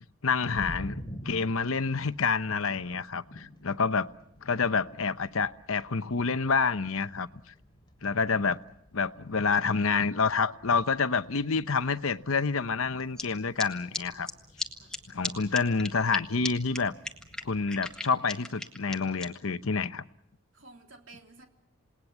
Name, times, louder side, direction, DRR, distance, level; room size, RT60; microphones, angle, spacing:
voice 1, 0.2-4.1 4.4-7.3 8.0-8.6 8.9-14.3 15.1-16.9 17.4-20.0, left 5 dB, 70° left, 13 dB, 0.9 m, -28 dB
sound 1, 0.5-18.1, equal, 20° left, 2.9 m, -49 dB
sound 2, 13.2-13.3 13.6-13.7 13.9-14.0 14.3-14.4 14.6-14.7 14.9-15.0 15.2-15.3 15.5-16.2 16.4-16.5 16.7-16.8 17.0-19.2, left 2 dB, 5° left, 1.7 m, -34 dB
voice 2, 20.5-21.5, right 2 dB, 60° right, 3 dB, 3.2 m, -54 dB
28.5 x 19.5 x 7.3 m, 0.76 s
head